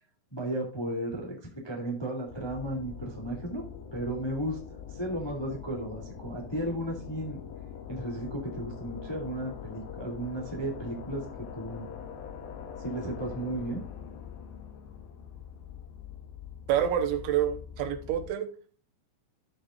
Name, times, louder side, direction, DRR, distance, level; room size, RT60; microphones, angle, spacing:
voice 1, 0.3-1.3 1.6-3.6 3.9-4.6 4.9-7.4 7.9-11.2 11.5-11.9 12.8-13.8, right 1 dB, 15° left, -1 dB, 0.9 m, -34 dB
sound 1, 2.3-18.3, left 8 dB, 65° left, 2.6 m, -43 dB
voice 2, 16.7-18.5, right 10 dB, 80° right, 7 dB, 3.3 m, -27 dB
14.0 x 7.2 x 2.5 m, 0.39 s
omnidirectional pair, 5.7 m